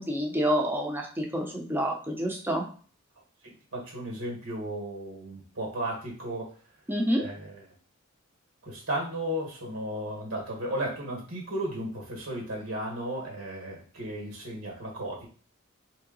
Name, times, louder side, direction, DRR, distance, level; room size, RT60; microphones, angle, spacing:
voice 1, 0.0-2.6 6.9-7.2, equal, 10° right, 1 dB, 0.6 m, -28 dB
voice 2, 3.7-6.5 7.2-7.6 8.6-15.3, right 1 dB, 80° right, -2 dB, 1.6 m, -34 dB
3.4 x 2.8 x 3.9 m, 0.41 s
head